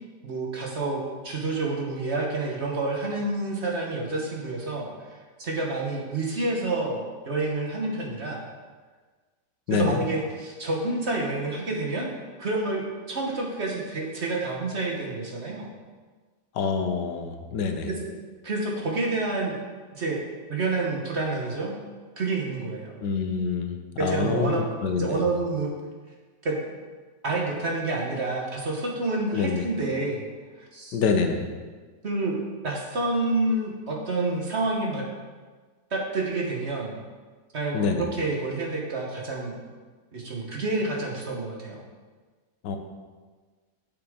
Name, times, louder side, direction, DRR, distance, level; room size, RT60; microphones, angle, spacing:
voice 1, 0.2-8.4 9.7-12.1 12.4-15.7 17.9-18.1 18.4-19.6 19.9-20.2 20.5-21.8 22.2-22.9 24.0-24.7 24.9-25.7 26.4-26.8 27.2-30.2 30.6-31.0 32.0-35.1 35.9-37.0 37.5-39.6 40.1-41.8, right 2 dB, 45° right, -1 dB, 1.2 m, -28 dB
voice 2, 9.7-10.0 16.5-17.9 23.0-25.2 29.3-29.6 30.9-31.5 37.7-38.1 42.6-42.8, left 5 dB, 85° left, 6 dB, 1.4 m, -26 dB
8.7 x 6.8 x 3.6 m, 1.4 s
omnidirectional pair, 1.8 m